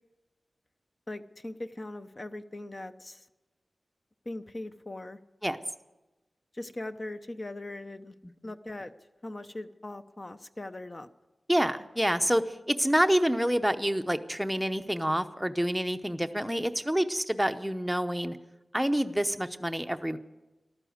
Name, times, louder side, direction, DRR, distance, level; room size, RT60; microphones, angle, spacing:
voice 1, 1.1-3.2 4.3-5.2 6.5-8.1 8.4-8.9 9.2-11.1, left 2 dB, 30° left, 10 dB, 0.7 m, -40 dB
voice 2, 11.5-18.4 18.7-20.2, equal, 5° right, 8 dB, 0.8 m, -27 dB
14.5 x 12.5 x 8.0 m, 1.1 s
wide cardioid pair, 110°, 0 cm